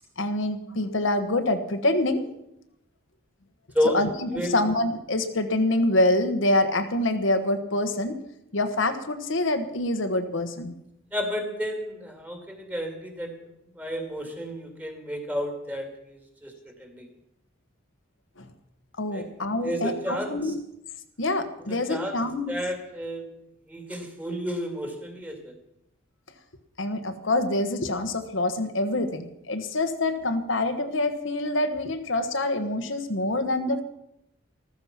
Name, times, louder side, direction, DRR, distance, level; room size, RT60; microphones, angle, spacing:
voice 1, 0.2-2.3 3.9-8.2 8.5-10.7 18.4-18.5 19.0-20.5 21.2-22.5 26.8-33.8, left 2 dB, 75° left, 7 dB, 1.3 m, -26 dB
voice 2, 11.1-13.3 13.8-16.5 16.8-17.1 19.1-19.3 19.6-20.5 21.7-22.2 22.5-23.2 23.7-25.5, equal, 10° right, 4 dB, 2.2 m, -31 dB
14.0 x 14.0 x 5.9 m, 0.83 s
head